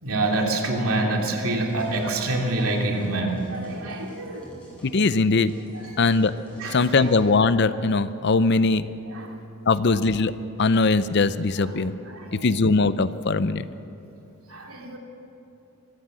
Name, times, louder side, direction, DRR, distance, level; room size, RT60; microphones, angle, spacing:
voice 1, 0.0-4.5 5.7-6.2 6.6-7.1 9.0-9.4 11.6-12.7 14.5-15.0, right 2 dB, 75° right, 1 dB, 2.8 m, -27 dB
sound 1, 1.6-7.2, equal, 5° left, 6.4 m, -49 dB
voice 2, 4.8-5.5 6.0-6.3 6.7-8.8 9.7-10.3 10.6-11.9 12.3-13.6, left 3 dB, 50° left, 14 dB, 0.6 m, -20 dB
23.5 x 14.5 x 7.6 m, 2.9 s
head